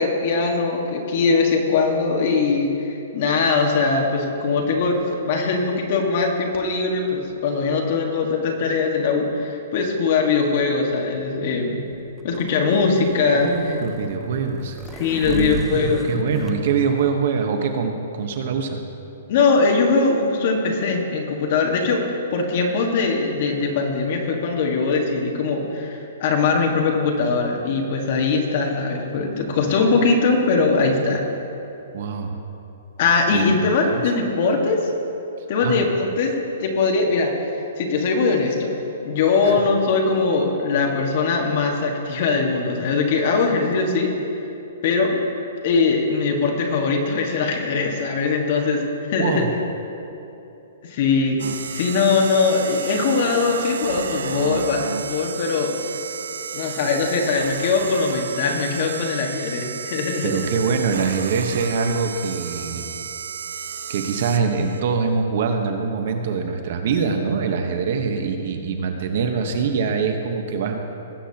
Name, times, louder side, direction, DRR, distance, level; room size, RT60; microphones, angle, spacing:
voice 1, 0.0-11.8 12.2-13.7 14.9-16.1 19.3-31.2 33.0-34.8 35.5-36.3 36.6-37.3 37.8-38.7 39.0-44.1 44.8-45.1 45.6-49.4 50.8-51.4 51.7-55.7 56.5-60.3, left 4 dB, 45° left, 1 dB, 1.5 m, -21 dB
sound 1, 11.9-16.5, right 3 dB, 10° right, 0.6 m, -37 dB
voice 2, 13.3-14.8 15.3-18.8 31.9-32.4 33.3-34.0 35.6-35.8 39.4-39.5 49.2-49.5 60.2-62.9 63.9-70.8, right 5 dB, 55° right, 5 dB, 1.1 m, -24 dB
sound 2, 51.4-64.8, right 6 dB, 85° right, 0.6 m, -33 dB
19.0 x 8.3 x 2.9 m, 2.9 s
hypercardioid pair, 160°, 0 cm